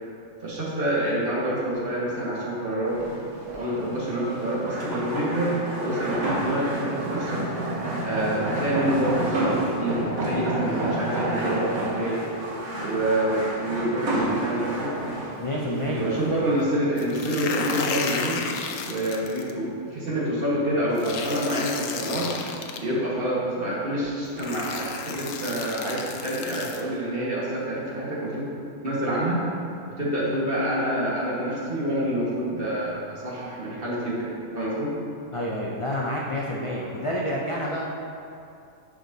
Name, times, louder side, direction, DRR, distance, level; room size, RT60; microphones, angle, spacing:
voice 1, 0.4-3.0 3.5-5.5 5.8-7.4 8.1-12.2 12.8-14.9 16.0-18.4 18.8-22.3 22.8-28.5 28.8-29.4 30.0-34.9, right 1 dB, 40° right, -7 dB, 1.7 m, -27 dB
sound 1, 2.9-16.6, right 1 dB, 90° right, 1.6 m, -30 dB
voice 2, 15.4-16.1 35.3-37.9, equal, 50° left, -4 dB, 0.3 m, -28 dB
sound 2, 17.0-19.5 21.0-22.8 23.8-23.9 24.4-26.8, left 5 dB, 75° left, 0.9 m, -33 dB
10.5 x 5.1 x 2.7 m, 2.5 s
omnidirectional pair, 1.4 m